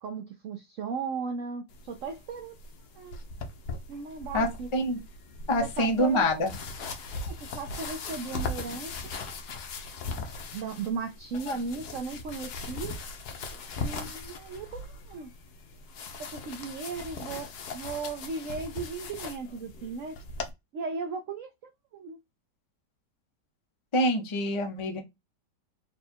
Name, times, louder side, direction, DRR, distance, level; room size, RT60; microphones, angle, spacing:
voice 1, 0.0-2.6 2.9-3.2 3.9-4.7 5.6-6.3 7.3-8.9 10.5-13.0 13.8-15.3 16.3-17.5 17.7-20.2 20.7-22.2, right 4 dB, 65° right, 0.8 m, -36 dB
sound 1, 1.7-20.5, left 3 dB, 70° left, 1.3 m, -39 dB
voice 2, 4.3-5.0 5.5-6.5 11.5-11.6 23.9-25.0, left 1 dB, 30° left, 0.5 m, -26 dB
4.2 x 2.4 x 4.3 m
omnidirectional pair, 1.9 m